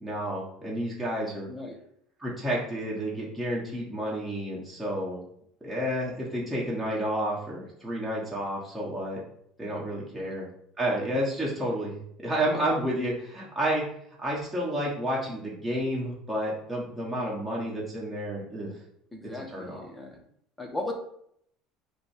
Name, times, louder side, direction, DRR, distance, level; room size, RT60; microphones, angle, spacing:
voice 1, 0.0-1.5 2.2-5.2 5.6-9.2 9.6-10.4 10.8-13.8 14.2-18.7 19.5-19.8, equal, 10° right, -6 dB, 1.3 m, -30 dB
voice 2, 1.5-1.8 10.1-10.4 11.4-11.5 19.1-20.2 20.6-20.9, left 2 dB, 5° left, 1 dB, 0.9 m, -37 dB
5.1 x 2.3 x 4.4 m, 0.70 s
supercardioid pair, 115°, 0 cm